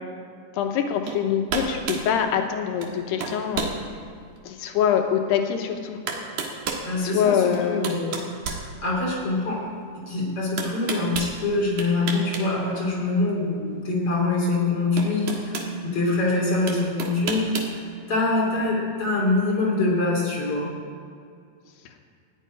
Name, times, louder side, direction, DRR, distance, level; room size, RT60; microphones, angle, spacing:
voice 1, 0.6-3.7 4.4-6.0 7.0-7.9, left 8 dB, 85° left, 4 dB, 3.1 m, -24 dB
sound 1, 1.1-1.2 1.5-2.1 2.8-2.9 3.2-3.8 4.4-4.5 5.5-5.6 6.1-6.9 7.5-9.2 10.6-11.3 11.8-12.5 12.8-12.9 14.3-14.4 15.0-15.7 16.7-17.7, right 4 dB, 55° right, 2.1 m, -30 dB
voice 2, 6.8-9.6 9.9-20.7, left 2 dB, 35° left, -4 dB, 3.7 m, -25 dB
14.0 x 8.6 x 9.8 m, 2.3 s
omnidirectional pair, 4.6 m